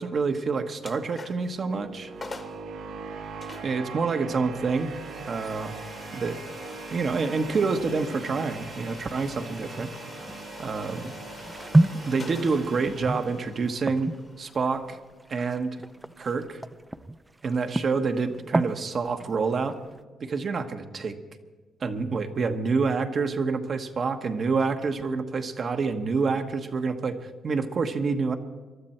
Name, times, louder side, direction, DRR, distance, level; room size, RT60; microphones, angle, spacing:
voice 1, 0.0-2.1 3.6-4.9 5.3-5.7 6.1-6.4 6.9-9.9 10.6-11.1 12.1-15.0 15.3-15.8 16.2-16.6 17.4-19.8 20.2-21.1 21.8-28.4, right 4 dB, 45° right, 6 dB, 1.2 m, -27 dB
sound 1, 0.8-1.6 1.9-2.0 2.2-2.7 3.4-16.1, left 3 dB, 30° left, 1.3 m, -45 dB
sound 2, 0.9-13.9, right 5 dB, 75° right, 1.5 m, -41 dB
sound 3, 11.1-17.2 17.4-18.8 19.2-20.0, right 1 dB, 15° right, 0.5 m, -29 dB
22.5 x 12.5 x 4.4 m, 1.4 s
cardioid pair, 90°, 0 cm